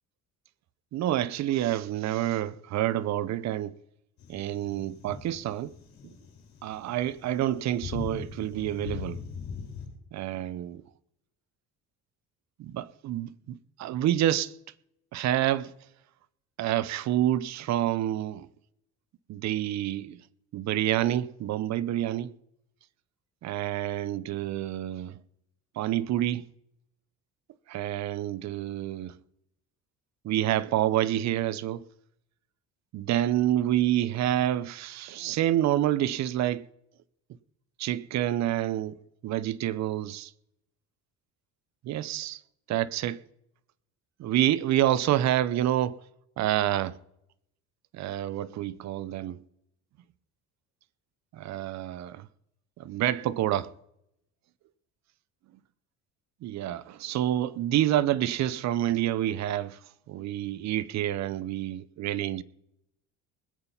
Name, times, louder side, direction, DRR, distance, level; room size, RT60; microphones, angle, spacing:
voice 1, 0.9-3.8 4.3-5.7 6.6-9.2 10.1-10.8 12.6-14.5 15.1-15.7 16.6-18.5 19.3-20.2 20.5-22.3 23.4-25.2 25.8-26.4 27.7-29.1 30.2-31.8 32.9-36.7 37.8-39.0 39.2-40.3 41.8-42.4 42.7-43.2 44.2-46.0 46.4-47.0 47.9-49.4 51.3-52.3 52.8-53.7 56.4-59.8 60.1-62.4, right 13 dB, 55° right, 0.8 m, -28 dB
sound 1, 4.2-9.9, left 6 dB, 60° left, 4.8 m, -41 dB
20.0 x 8.9 x 5.6 m
cardioid pair, 130°, 32 cm